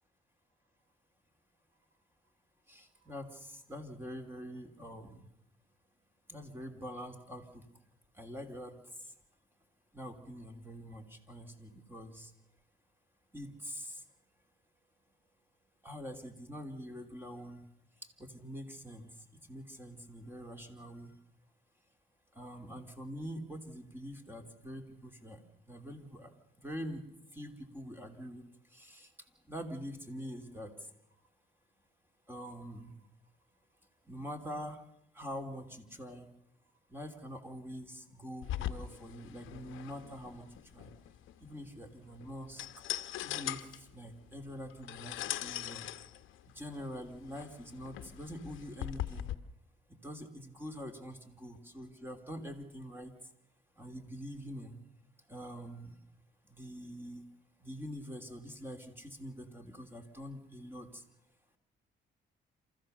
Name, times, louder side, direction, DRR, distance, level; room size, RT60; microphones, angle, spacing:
voice 1, 2.7-5.3 6.3-7.6 8.2-9.1 9.9-12.3 13.3-14.0 15.8-17.7 18.2-19.1 19.5-21.2 22.3-25.4 25.7-26.3 26.6-27.0 27.3-28.4 28.7-29.1 29.5-30.7 32.3-33.0 34.1-34.8 35.1-36.3 36.9-40.9 41.4-42.7 43.2-45.9 46.4-49.3 49.9-53.1 53.8-54.8 55.3-55.9 56.5-57.2 57.6-61.0, equal, 10° right, 5 dB, 3.0 m, -45 dB
sound 1, 38.4-49.3, left 12 dB, 85° left, 1.0 m, -41 dB
27.5 x 14.5 x 6.7 m, 0.78 s
cardioid pair, 90°, 20 cm